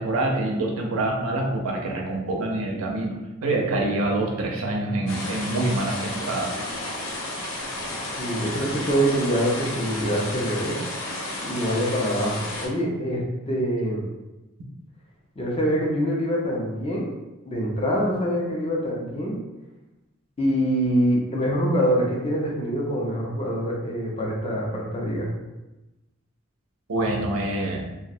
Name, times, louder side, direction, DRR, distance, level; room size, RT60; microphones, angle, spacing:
voice 1, 0.0-6.5 26.9-27.8, right 2 dB, 80° right, 1 dB, 0.5 m, -26 dB
sound 1, 5.1-12.7, left 1 dB, 75° left, 0.5 m, -32 dB
voice 2, 8.2-10.8 11.4-14.1 15.4-17.1 17.5-19.4 20.4-25.3, equal, 25° left, -2 dB, 0.4 m, -25 dB
2.3 x 2.0 x 2.6 m, 1.0 s
head